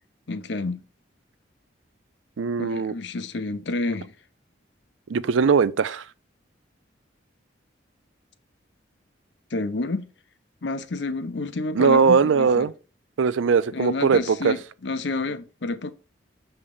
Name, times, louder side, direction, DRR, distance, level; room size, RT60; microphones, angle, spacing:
voice 1, 0.3-0.8 2.6-4.1 9.5-10.1 10.6-12.7 13.7-15.9, left 2 dB, 65° left, 0.6 m, -29 dB
voice 2, 2.4-2.9 5.1-6.0 11.7-12.7 13.2-14.6, right 5 dB, 80° right, 0.4 m, -20 dB
7.0 x 3.4 x 5.3 m
head